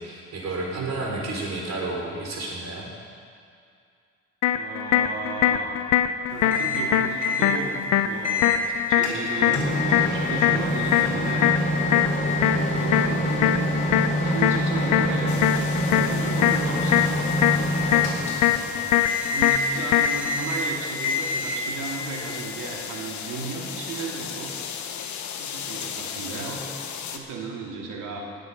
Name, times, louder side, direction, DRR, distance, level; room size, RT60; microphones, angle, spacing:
voice 1, 0.0-2.9, right 2 dB, 60° right, -1 dB, 3.7 m, -31 dB
sound 1, 4.4-20.4, left 11 dB, 90° left, 0.7 m, -24 dB
voice 2, 4.5-5.7 6.3-11.5 12.3-15.6 15.8-17.2 18.3-24.5 25.4-26.7 27.1-28.2, right 4 dB, 85° right, -1 dB, 2.5 m, -35 dB
Microwave oven, 6.5-6.9 7.2-7.5 8.2-8.6 9.0-18.7 19.0-19.7 20.0-20.7 21.0-21.7, equal, 25° left, 3.9 m, -26 dB
sound 2, 15.3-27.2, left 7 dB, 70° left, 1.1 m, -37 dB
18.5 x 8.0 x 5.4 m, 2.3 s
cardioid pair, 90°, 30 cm